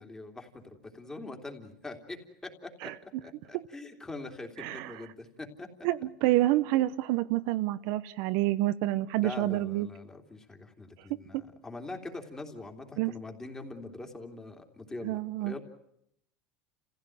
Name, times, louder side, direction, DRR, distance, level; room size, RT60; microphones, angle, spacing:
voice 1, 0.0-2.9 3.2-5.7 6.2-6.5 9.2-11.4 11.6-15.6, left 2 dB, 15° left, 4 dB, 3.1 m, -43 dB
voice 2, 4.6-4.9 5.8-9.9 13.0-13.1 15.0-15.5, right 16 dB, 65° right, 12 dB, 0.9 m, -28 dB
30.0 x 15.5 x 9.4 m, 0.77 s
supercardioid pair, 125°, 5 cm